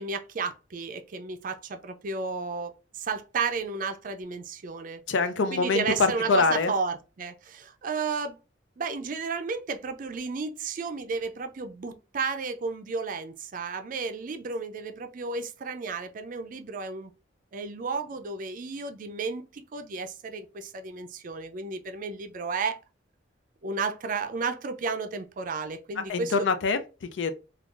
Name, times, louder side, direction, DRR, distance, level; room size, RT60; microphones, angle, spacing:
voice 1, 0.0-5.0 5.5-8.4 8.8-17.1 17.5-22.8 23.6-26.5, right 4 dB, 45° right, 0.4 m, -33 dB
voice 2, 5.1-6.7 26.1-26.8 27.2-27.3, left 4 dB, 80° left, 0.5 m, -24 dB
3.7 x 2.4 x 2.3 m
head